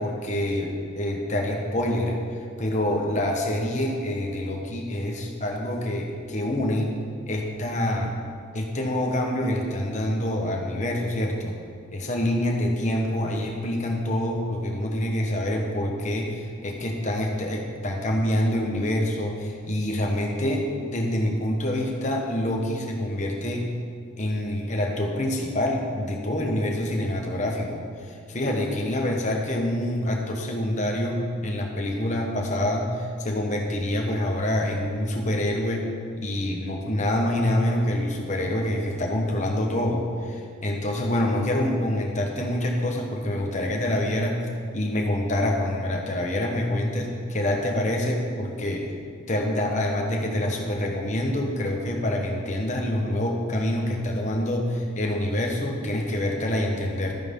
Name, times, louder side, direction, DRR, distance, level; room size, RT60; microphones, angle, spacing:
voice 1, 0.0-2.2 2.6-7.0 7.3-8.1 8.5-11.6 11.9-23.7 24.2-44.5 44.7-48.9 49.3-57.2, left 1 dB, 35° left, 1 dB, 1.2 m, -26 dB
12.5 x 9.1 x 3.8 m, 2.2 s
head